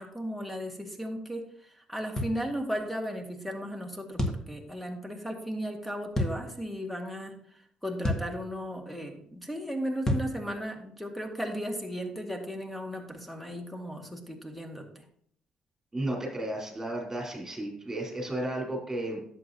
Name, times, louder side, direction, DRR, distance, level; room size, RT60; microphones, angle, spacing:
voice 1, 0.0-15.0, equal, 5° left, 3 dB, 1.8 m, -36 dB
sound 1, 2.2-2.4 4.2-4.5 6.1-6.4 8.0-8.3 10.0-10.3, left 1 dB, 20° left, 1.5 m, -28 dB
voice 2, 15.9-19.3, right 1 dB, 15° right, -1 dB, 3.7 m, -33 dB
11.0 x 7.5 x 2.8 m, 0.64 s
supercardioid pair, 75°, 2 cm